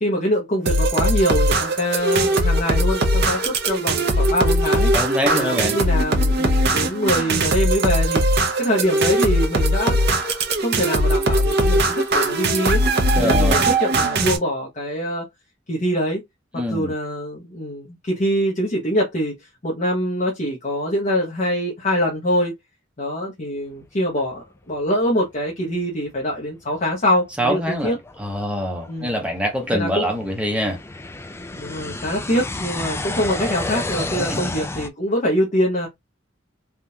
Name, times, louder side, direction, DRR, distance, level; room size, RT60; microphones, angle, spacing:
voice 1, 0.0-4.9 5.3-10.0 10.6-12.8 13.2-15.3 15.7-16.2 16.7-22.5 23.0-28.0 28.9-29.1 29.7-30.0 31.5-35.9, equal, 40° left, 0.9 m, -24 dB
sound 1, 0.7-14.4, right 1 dB, 60° right, 0.8 m, -20 dB
voice 2, 4.9-5.8 13.1-13.7 16.5-16.9 27.4-30.8 34.2-34.4, equal, 5° right, 0.9 m, -24 dB
sound 2, 26.1-26.2 26.8-26.9 27.5-34.9, left 2 dB, 15° left, 0.4 m, -31 dB
3.6 x 2.4 x 2.7 m
head